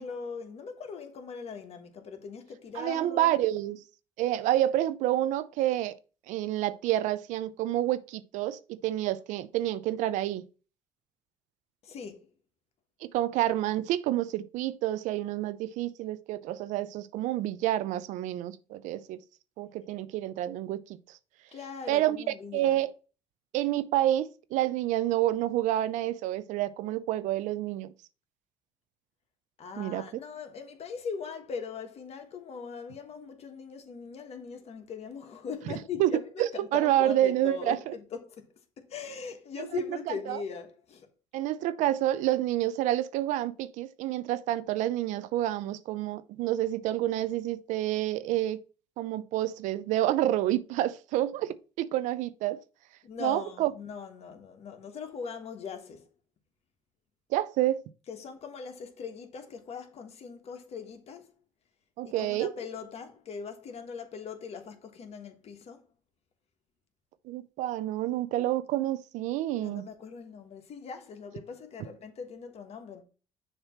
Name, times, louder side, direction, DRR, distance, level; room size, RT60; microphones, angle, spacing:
voice 1, 0.0-3.3 11.8-12.3 21.5-22.8 29.6-38.5 38.8-41.1 53.0-56.1 58.1-61.3 62.0-65.8 69.5-73.0, left 6 dB, 55° left, 1.3 m, -40 dB
voice 2, 2.7-3.8 4.2-6.0 6.3-10.4 13.0-19.2 19.6-20.8 21.9-22.9 23.5-27.9 29.8-30.0 35.7-35.8 36.0-36.1 36.4-37.9 39.6-40.4 41.3-48.6 49.0-52.6 53.2-53.7 57.3-57.8 62.0-62.5 67.3-69.8, right 13 dB, 80° right, 0.5 m, -28 dB
6.7 x 2.9 x 5.7 m
supercardioid pair, 85°, 13 cm